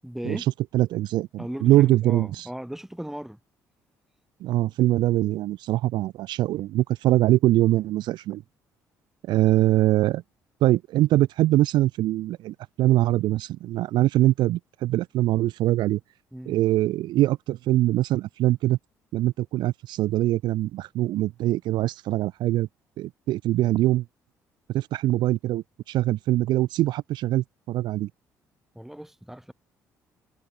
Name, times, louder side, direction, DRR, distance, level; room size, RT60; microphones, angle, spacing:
voice 1, 0.0-0.5 1.4-3.4 16.3-16.6 28.7-29.5, equal, 5° right, 7.1 m, -37 dB
voice 2, 0.7-2.5 4.4-8.4 9.3-10.2 10.6-16.0 16.5-18.8 19.1-22.7 23.0-24.0 24.7-28.1, right 15 dB, 65° right, 0.5 m, -23 dB
hypercardioid pair, 55°, 8 cm